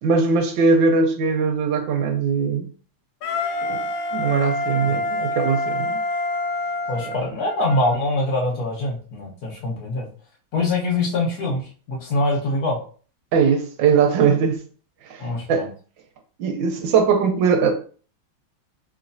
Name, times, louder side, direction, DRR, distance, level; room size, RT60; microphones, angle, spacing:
voice 1, 0.0-2.7 3.6-3.8 4.1-6.0 7.1-7.2 13.3-14.6 15.1-15.2 15.5-15.7 16.4-17.7, right 5 dB, 70° right, 1.2 m, -20 dB
Wind instrument woodwind instrument, 3.2-8.0, left 2 dB, 75° left, 1.4 m, -26 dB
voice 2, 6.9-10.1 10.5-12.8 15.2-15.7, left 2 dB, 55° left, 1.2 m, -24 dB
3.1 x 3.1 x 2.6 m
omnidirectional pair, 2.3 m